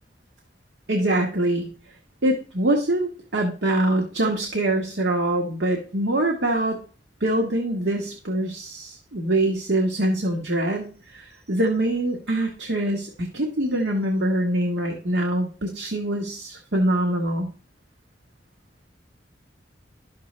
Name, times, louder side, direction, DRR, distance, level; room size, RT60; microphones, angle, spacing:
voice 1, 0.9-1.7 2.2-6.8 7.2-17.5, right 1 dB, 80° right, 1 dB, 1.3 m, -24 dB
11.5 x 6.5 x 3.2 m, 0.38 s
head